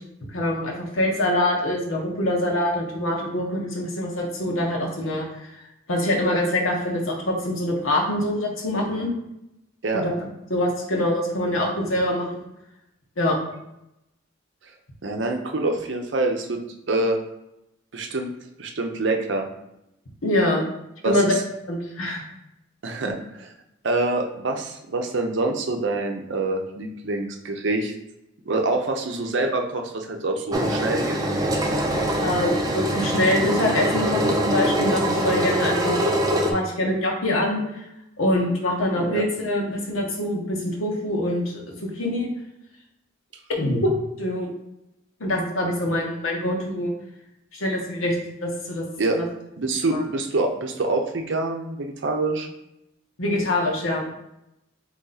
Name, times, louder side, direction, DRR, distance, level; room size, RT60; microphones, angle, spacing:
voice 1, 0.3-5.6 5.9-9.1 9.9-12.5 13.2-13.4 20.2-20.7 21.0-21.3 21.7-22.2 32.2-36.0 36.3-37.8 38.2-42.3 43.6-43.9 44.2-44.5 45.2-46.9 47.5-48.1 48.4-48.9 49.1-49.2 49.9-50.0 53.2-54.0, left 1 dB, 90° left, 0 dB, 1.1 m, -24 dB
voice 2, 15.0-16.6 16.9-17.2 17.9-18.3 18.6-19.5 21.0-21.4 22.8-23.5 23.8-27.9 28.5-31.2 39.0-39.2 49.0-49.2 49.6-52.5, right 2 dB, 60° right, 3 dB, 0.6 m, -26 dB
Engine, 30.5-36.5, equal, 20° right, 0.5 m, -23 dB
4.1 x 3.0 x 4.0 m, 0.87 s
head